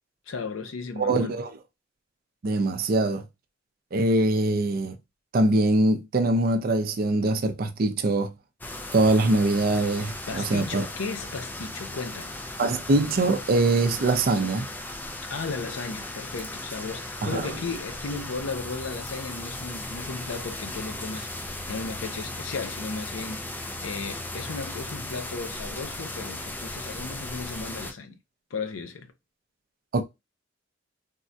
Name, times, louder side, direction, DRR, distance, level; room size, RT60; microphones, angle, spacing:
voice 1, 0.3-1.3 10.3-12.4 15.3-28.2 28.5-29.1, left 4 dB, 85° left, 0.5 m, -35 dB
voice 2, 1.0-1.6 2.4-3.2 3.9-5.0 5.3-8.3 8.9-10.9 12.6-14.6 17.2-17.4 29.9-30.0, right 2 dB, 50° right, 0.5 m, -23 dB
sound 1, 8.6-27.9, left 2 dB, 10° left, 0.4 m, -37 dB
3.6 x 2.1 x 2.6 m
head